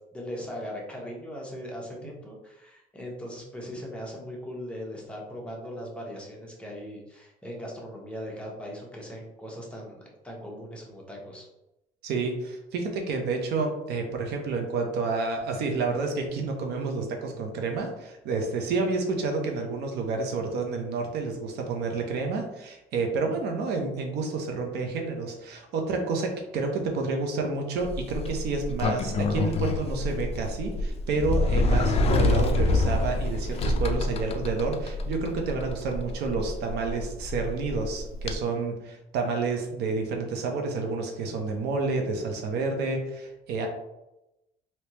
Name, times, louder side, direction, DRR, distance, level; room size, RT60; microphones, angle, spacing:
voice 1, 0.1-10.0 10.2-11.5, equal, 5° left, -3 dB, 1.0 m, -39 dB
voice 2, 12.0-43.7, right 4 dB, 75° right, 3 dB, 0.7 m, -29 dB
Sliding door, 27.8-38.4, left 2 dB, 35° left, 0.4 m, -27 dB
3.3 x 2.9 x 2.9 m, 0.92 s
cardioid pair, 110°, 17 cm